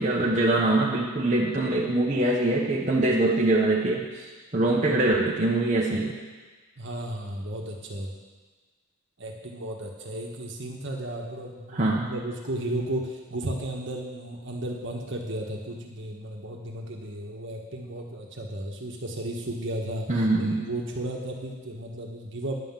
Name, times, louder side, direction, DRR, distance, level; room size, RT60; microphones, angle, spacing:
voice 1, 0.0-6.2 11.7-12.1 20.1-20.6, right 2 dB, 35° right, -4 dB, 1.1 m, -23 dB
voice 2, 6.8-8.1 9.2-20.1 20.4-22.6, right 1 dB, 55° right, 0 dB, 1.4 m, -34 dB
10.5 x 5.8 x 7.3 m, 1.4 s
head